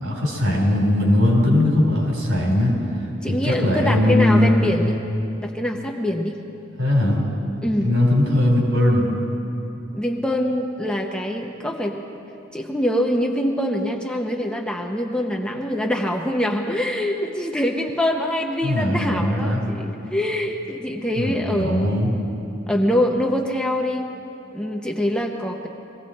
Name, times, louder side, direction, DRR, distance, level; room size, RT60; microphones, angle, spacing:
voice 1, 0.0-2.7 3.3-4.9 6.8-7.2 7.8-9.1 18.6-19.6 21.1-22.1, left 1 dB, 90° right, -1 dB, 4.0 m, -19 dB
voice 2, 3.2-5.0 5.4-6.4 7.6-7.9 9.9-12.0 12.5-22.0 22.7-24.0 24.5-25.7, left 1 dB, 5° left, 2 dB, 0.8 m, -24 dB
21.0 x 15.5 x 4.3 m, 2.8 s
head